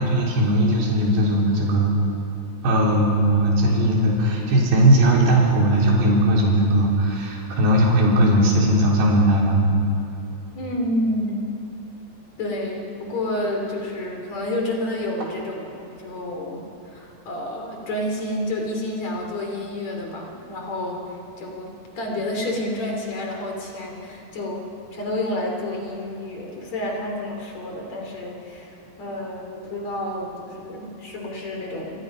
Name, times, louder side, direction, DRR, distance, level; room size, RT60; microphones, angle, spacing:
voice 1, 0.0-2.0 2.6-9.9, right 1 dB, 75° right, -3 dB, 5.7 m, -18 dB
voice 2, 10.5-11.4 12.4-16.6 16.9-24.6 24.9-32.0, left 1 dB, 45° left, 0 dB, 4.3 m, -29 dB
28.0 x 25.0 x 5.5 m, 2.7 s
omnidirectional pair, 4.6 m